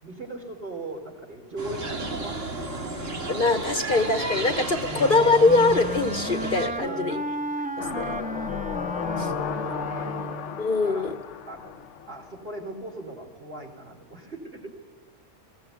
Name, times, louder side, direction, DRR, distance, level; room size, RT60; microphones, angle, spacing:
voice 1, 0.0-3.1 6.8-7.2 7.8-8.3 9.7-10.2 10.8-11.1 11.5-11.8 12.1-14.7, right 2 dB, 50° right, 2 dB, 4.3 m, -39 dB
sound 1, 1.6-6.7, right 2 dB, 85° right, 2.9 m, -32 dB
voice 2, 3.3-7.2 7.8-8.0 9.2-9.3 10.6-11.1, left 3 dB, 45° left, 8 dB, 1.3 m, -23 dB
Wind instrument woodwind instrument, 4.9-10.6, right 1 dB, 10° right, 0.5 m, -33 dB
sound 2, 7.8-12.7 13.0-13.1, left 8 dB, 70° left, 1.2 m, -34 dB
21.0 x 17.0 x 9.5 m, 1.4 s
omnidirectional pair, 1.3 m